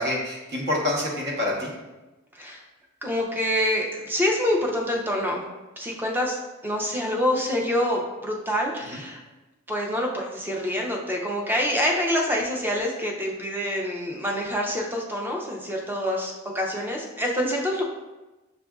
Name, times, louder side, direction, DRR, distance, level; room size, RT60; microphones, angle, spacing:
voice 1, 0.0-1.7 8.9-9.0, left 1 dB, 55° right, -3 dB, 1.1 m, -27 dB
voice 2, 3.0-5.4 5.8-9.2 9.7-17.8, equal, 10° right, 0 dB, 0.5 m, -26 dB
6.8 x 2.5 x 2.3 m, 1.1 s
head